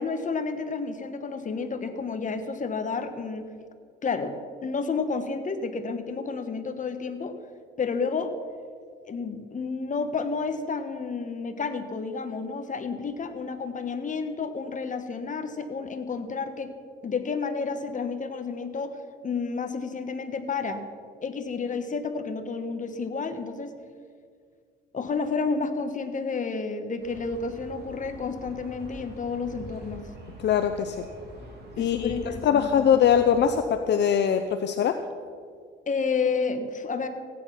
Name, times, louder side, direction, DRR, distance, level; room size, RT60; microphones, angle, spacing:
voice 1, 0.0-3.4 4.0-7.3 7.8-8.3 9.1-16.7 17.0-19.0 19.2-20.8 21.2-23.8 24.9-30.1 31.8-32.9 35.9-37.1, left 4 dB, 40° left, 8 dB, 1.4 m, -30 dB
sound 1, 27.0-33.5, right 1 dB, 55° right, 3.8 m, -44 dB
voice 2, 30.4-31.0 31.8-35.0, left 8 dB, 60° left, 7 dB, 0.7 m, -22 dB
15.0 x 9.5 x 5.9 m, 2.1 s
cardioid pair, 90°, 20 cm